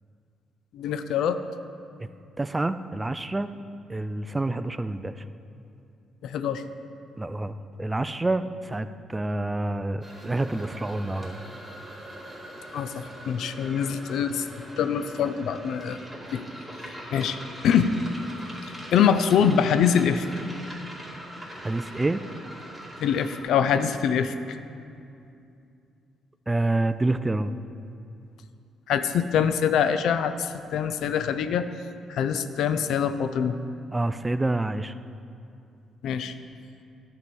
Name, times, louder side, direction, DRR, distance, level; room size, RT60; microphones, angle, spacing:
voice 1, 0.7-1.4 6.2-6.6 12.7-14.5 14.8-16.0 16.3-16.4 17.1-17.4 17.6-17.9 18.9-20.3 23.0-24.6 28.9-31.7 32.1-33.6 36.0-36.3, left 8 dB, 80° left, 10 dB, 0.4 m, -24 dB
voice 2, 2.4-3.5 3.9-5.2 7.1-11.4 21.6-22.2 26.5-27.5 33.9-34.9, right 2 dB, 15° right, 12 dB, 0.3 m, -27 dB
sound 1, 10.0-23.4, equal, 5° left, 2.3 m, -42 dB
10.5 x 4.7 x 7.1 m, 2.5 s
cardioid pair, 90°, 0 cm